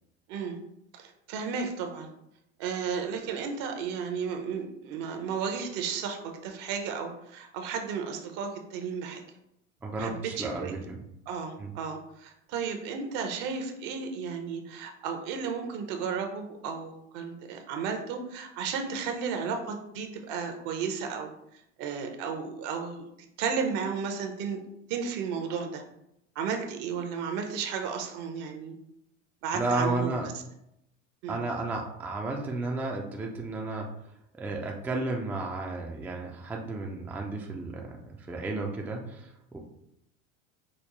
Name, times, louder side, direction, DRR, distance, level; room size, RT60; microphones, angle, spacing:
voice 1, 0.9-2.1 2.6-9.2 10.0-10.7 11.3-21.3 21.8-23.1 23.4-24.6 24.9-25.8 26.4-28.8 29.4-30.2 31.2-31.4, right 6 dB, 55° right, 4 dB, 0.8 m, -33 dB
voice 2, 9.8-11.0 11.6-11.7 29.5-30.3 31.3-33.9 34.4-39.6, right 2 dB, 5° right, 0 dB, 0.3 m, -33 dB
5.1 x 2.0 x 3.0 m, 0.80 s
hypercardioid pair, 95°, 37 cm